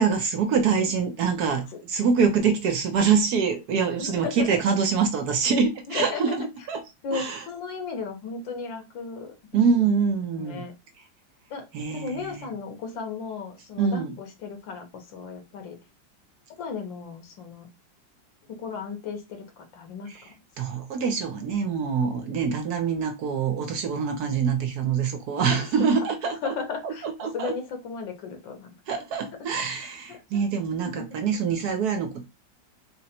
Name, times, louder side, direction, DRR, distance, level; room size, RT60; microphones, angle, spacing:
voice 1, 0.0-6.8 7.1-7.4 9.5-10.6 11.7-12.5 13.8-14.1 20.6-26.5 26.8-27.5 28.9-32.2, right 6 dB, 65° right, 1.1 m, -25 dB
voice 2, 4.0-4.6 5.9-6.4 7.0-9.3 9.8-9.9 10.3-10.7 11.5-15.8 16.6-17.7 18.6-20.3 25.4-25.6 26.4-27.1 27.3-28.8 29.5-29.6 30.1-30.2 30.8-31.2, left 5 dB, 80° left, 1.7 m, -35 dB
3.9 x 2.0 x 4.2 m
omnidirectional pair, 2.0 m